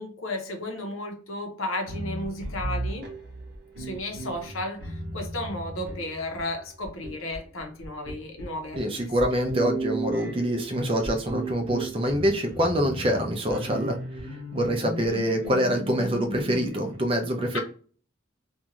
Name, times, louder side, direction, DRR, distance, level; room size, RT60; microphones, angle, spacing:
voice 1, 0.0-3.1 3.8-9.1 17.5-17.6, left 1 dB, 75° left, 3 dB, 0.8 m, -34 dB
sound 1, 1.9-17.0, right 2 dB, 60° right, 0.9 m, -36 dB
voice 2, 8.8-14.0 14.5-17.6, equal, 25° right, 3 dB, 0.5 m, -25 dB
2.6 x 2.4 x 2.9 m, 0.41 s
head